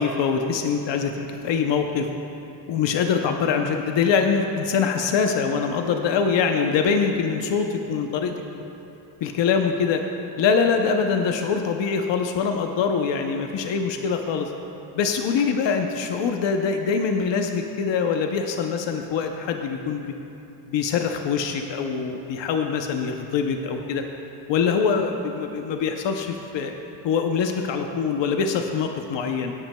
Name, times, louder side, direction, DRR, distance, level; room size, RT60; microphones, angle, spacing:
voice 1, 0.0-2.1 2.7-8.3 9.2-10.0 10.4-14.5 15.0-20.1 20.7-24.0 24.5-26.7 27.0-29.5, left 6 dB, 85° left, 4 dB, 0.7 m, -24 dB
17.5 x 9.0 x 2.2 m, 2.8 s
wide cardioid pair, 165°, 43 cm